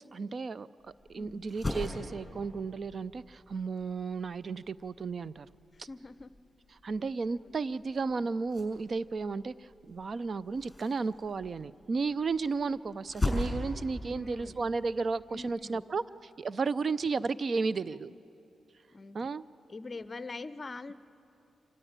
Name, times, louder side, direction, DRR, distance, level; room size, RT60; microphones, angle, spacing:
voice 1, 0.1-5.5 5.8-5.9 6.8-16.0 16.4-18.1 19.1-19.4, right 4 dB, 50° right, 17 dB, 0.5 m, -33 dB
sound 1, 0.8-15.5, left 1 dB, 15° left, 5.9 m, -41 dB
voice 2, 5.7-6.3 14.1-14.7 15.3-15.8 18.9-19.3 19.7-20.9, left 3 dB, 35° left, 14 dB, 0.7 m, -43 dB
26.0 x 15.0 x 8.8 m, 2.8 s
cardioid pair, 90°, 0 cm